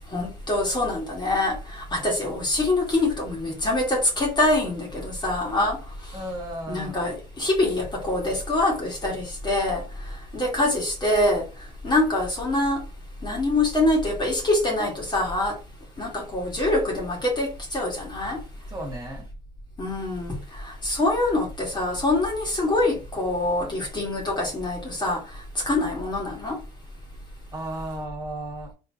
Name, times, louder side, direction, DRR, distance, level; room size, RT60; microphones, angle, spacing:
voice 1, 0.1-6.2 6.7-11.4 11.8-12.8 13.2-15.6 16.0-18.4 19.8-26.6, left 2 dB, 25° left, 1.9 m, -25 dB
voice 2, 6.1-7.0 18.7-19.3 27.5-28.7, right 1 dB, 20° right, 2.0 m, -34 dB
3.8 x 3.8 x 2.9 m
cardioid pair, 110°, 17 cm